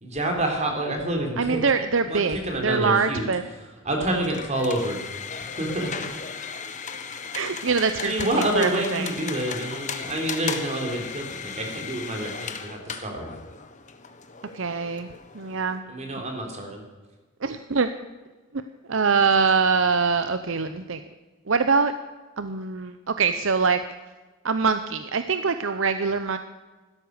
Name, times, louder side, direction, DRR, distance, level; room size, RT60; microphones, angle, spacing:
voice 1, 0.0-1.6 2.1-3.3 3.8-5.0 5.4-5.9 8.0-13.3 15.9-16.8, right 1 dB, 35° right, 3 dB, 3.6 m, -28 dB
voice 2, 1.4-3.4 7.3-9.1 14.5-15.1 15.3-15.8 17.4-17.9 18.9-21.0 21.5-21.9 22.4-23.8 24.4-26.4, right 5 dB, 65° right, 10 dB, 0.7 m, -23 dB
sound 1, 4.0-15.8, left 6 dB, 35° left, 1.2 m, -36 dB
16.0 x 13.0 x 6.7 m, 1.3 s
head